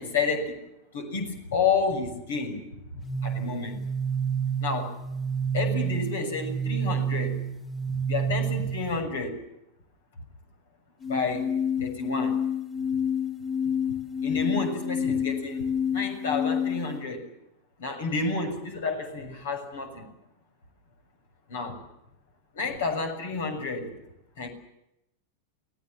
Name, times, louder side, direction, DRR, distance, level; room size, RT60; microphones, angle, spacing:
voice 1, 0.0-3.9 4.6-5.0 5.5-7.5 7.9-9.5 11.0-12.4 13.6-13.7 14.2-17.3 17.8-20.1 21.5-21.8 22.5-24.0 24.4-24.5, left 4 dB, 60° left, 6 dB, 6.6 m, -30 dB
sound 1, 3.0-9.0 11.0-17.0, left 1 dB, 20° left, 2.1 m, -29 dB
29.0 x 19.0 x 7.4 m, 0.83 s
figure-of-eight pair, 90°, 0 cm